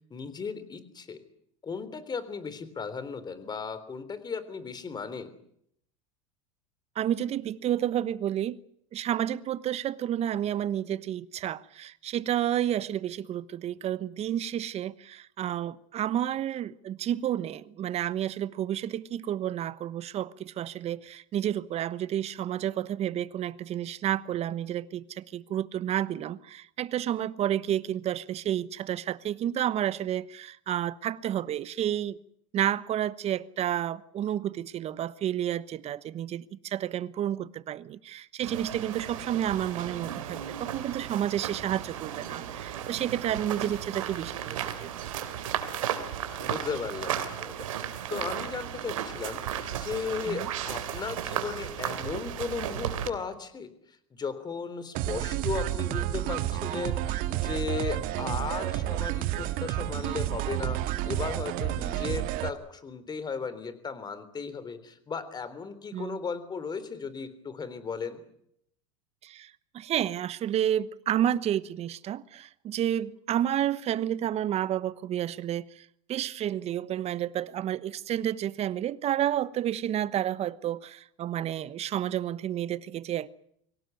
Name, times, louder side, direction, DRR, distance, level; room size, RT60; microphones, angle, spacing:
voice 1, 0.1-1.2 1.6-5.3 46.4-47.7 48.1-53.7 54.1-68.2, left 5 dB, 25° left, 3.6 m, -36 dB
voice 2, 7.0-8.6 8.9-32.2 32.5-44.9 50.3-50.5 65.9-66.2 69.2-83.3, right 11 dB, 40° right, 1.1 m, -30 dB
sound 1, 38.4-53.1, right 10 dB, 85° right, 3.2 m, -35 dB
sound 2, 54.9-62.5, right 14 dB, 55° right, 2.0 m, -30 dB
24.0 x 18.0 x 9.3 m
supercardioid pair, 105°, 17 cm